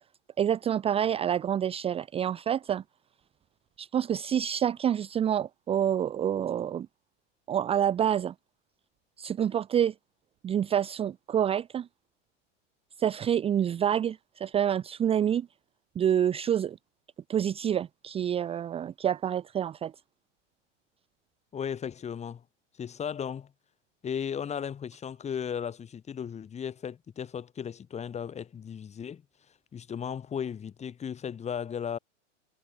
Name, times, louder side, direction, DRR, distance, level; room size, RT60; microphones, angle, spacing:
voice 1, 0.4-2.8 3.8-6.9 7.5-8.3 9.2-9.9 10.4-11.9 13.0-15.5 15.9-16.8 17.3-19.9, right 9 dB, 15° right, 0.9 m, -27 dB
voice 2, 21.5-22.4 22.8-23.5 24.0-29.2 29.7-32.0, left 7 dB, 15° left, 4.5 m, -35 dB
hypercardioid pair, 140°, 37 cm